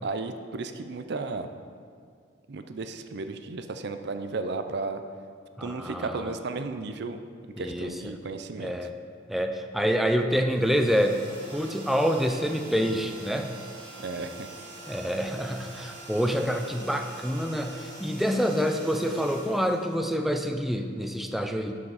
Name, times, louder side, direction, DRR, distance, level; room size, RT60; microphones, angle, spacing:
voice 1, 0.0-1.5 2.5-5.0 5.6-7.2 7.6-8.9 14.0-14.5, right 3 dB, 60° right, 8 dB, 0.5 m, -34 dB
voice 2, 5.6-6.3 7.6-8.2 8.6-8.9 9.3-11.2 11.5-13.5 14.9-21.8, equal, ahead, 5 dB, 0.4 m, -27 dB
sound 1, 10.5-20.5, right 2 dB, 80° right, 2.1 m, -44 dB
11.5 x 6.1 x 4.0 m, 2.2 s
head